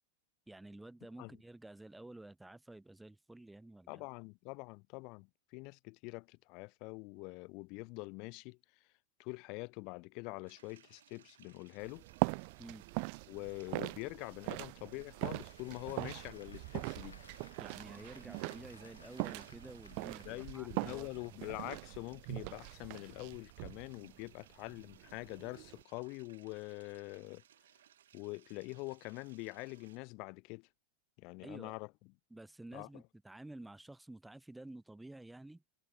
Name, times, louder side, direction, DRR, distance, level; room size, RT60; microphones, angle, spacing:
voice 1, 0.5-4.0 12.6-12.8 15.8-15.9 17.6-21.1 31.4-31.7 32.3-35.6, right 2 dB, 5° right, 2.2 m, -51 dB
voice 2, 3.9-8.6 9.2-12.0 13.3-17.2 20.2-27.4 28.1-30.7 31.2-31.9 32.7-32.9, left 29 dB, 45° left, 2.4 m, -45 dB
sound 1, 10.5-30.0, right 11 dB, 60° right, 6.0 m, -65 dB
sound 2, 11.8-25.8, right 40 dB or more, 45° right, 0.4 m, -42 dB
Applause, 14.6-22.2, left 6 dB, 75° left, 4.6 m, -62 dB
figure-of-eight pair, 90°, 0 cm